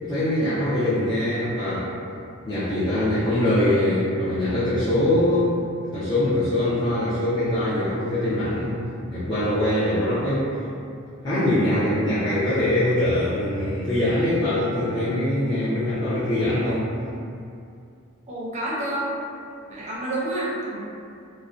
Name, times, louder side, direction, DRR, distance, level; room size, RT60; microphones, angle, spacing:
voice 1, 0.0-1.9 2.5-5.5 5.9-8.8 9.1-10.5 11.2-16.9, left 1 dB, 20° left, -14 dB, 0.5 m, -23 dB
voice 2, 18.3-19.1 19.7-20.8, right 1 dB, 35° right, -6 dB, 0.5 m, -28 dB
2.5 x 2.0 x 2.3 m, 2.5 s
head